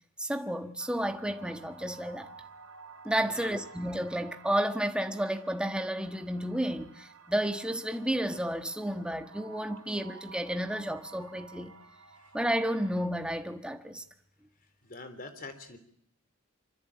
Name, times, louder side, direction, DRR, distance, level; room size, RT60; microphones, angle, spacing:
voice 1, 0.2-2.3 3.0-11.7 12.3-14.0, right 1 dB, 5° right, 1.3 m, -31 dB
sound 1, 0.8-13.1, right 5 dB, 70° right, 2.1 m, -52 dB
voice 2, 3.2-3.6 12.2-12.3 14.8-15.8, left 3 dB, 40° left, 3.5 m, -44 dB
25.0 x 25.0 x 8.5 m
head